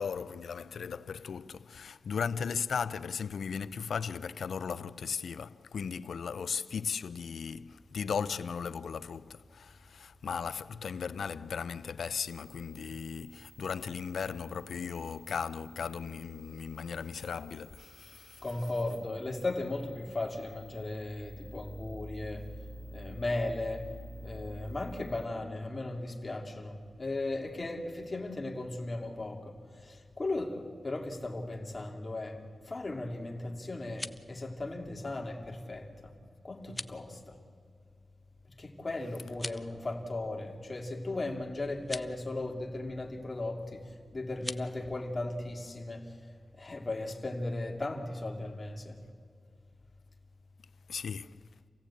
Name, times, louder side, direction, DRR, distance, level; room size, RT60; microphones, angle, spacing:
voice 1, 0.0-18.4 50.9-51.4, left 6 dB, 85° left, 0.6 m, -37 dB
sound 1, 7.4-25.3, right 1 dB, 20° right, 2.5 m, -51 dB
voice 2, 18.4-22.5 22.9-23.9 24.2-36.1 36.4-37.3 38.6-46.2 46.5-49.0, left 2 dB, 35° left, 2.6 m, -37 dB
sound 2, 33.7-34.3 36.6-37.0 39.3-39.7 41.8-42.1 44.3-44.7, left 1 dB, 15° left, 0.7 m, -41 dB
28.0 x 16.5 x 8.5 m
wide cardioid pair, 90°, 0 cm